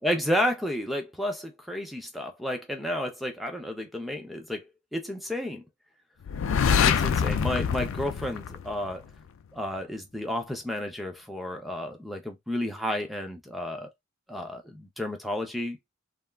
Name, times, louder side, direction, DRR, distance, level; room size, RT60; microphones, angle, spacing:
voice 1, 0.0-4.7 4.9-5.6 6.8-9.0 9.5-13.9 14.3-15.8, equal, ahead, 0.5 m, -31 dB
sound 1, 6.3-9.1, left 7 dB, 60° left, 0.4 m, -25 dB
3.4 x 2.1 x 2.3 m
head